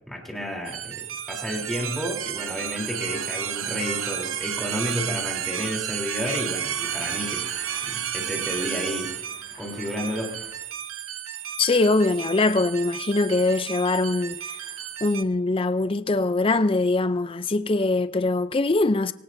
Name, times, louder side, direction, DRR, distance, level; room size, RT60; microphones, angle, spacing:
voice 1, 0.1-7.5 7.9-9.1 9.6-10.3, left 1 dB, ahead, 3.5 m, -31 dB
sound 1, 0.6-15.2, right 10 dB, 75° right, 0.8 m, -32 dB
sound 2, 2.3-10.6, left 3 dB, 85° left, 4.0 m, -47 dB
voice 2, 11.6-14.5 15.0-19.1, left 2 dB, 25° left, 0.5 m, -22 dB
23.0 x 18.5 x 2.7 m
head